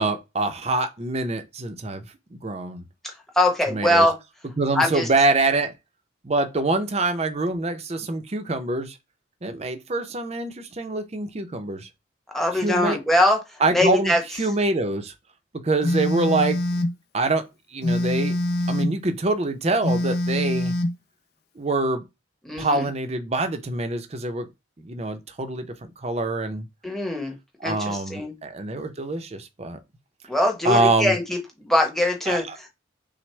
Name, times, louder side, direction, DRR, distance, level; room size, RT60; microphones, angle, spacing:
voice 1, 0.0-2.0 2.3-2.9 3.7-4.1 4.6-5.7 6.2-9.0 9.4-11.9 12.5-13.0 13.6-15.1 15.6-16.8 17.1-17.4 17.7-18.4 18.7-20.7 21.6-22.0 22.6-24.5 24.8-26.7 27.6-29.8 30.6-31.2 32.3-32.6, right 2 dB, 35° right, 0.6 m, -25 dB
voice 2, 3.0-4.1 4.7-5.1 12.3-13.4 13.7-14.2 22.4-22.9 26.8-27.3 27.6-28.3 30.3-31.4 31.7-32.7, left 1 dB, ahead, 0.9 m, -22 dB
Telephone, 15.8-17.0 17.8-19.0 19.8-21.0, left 1 dB, 50° left, 0.5 m, -24 dB
6.0 x 2.1 x 3.2 m
head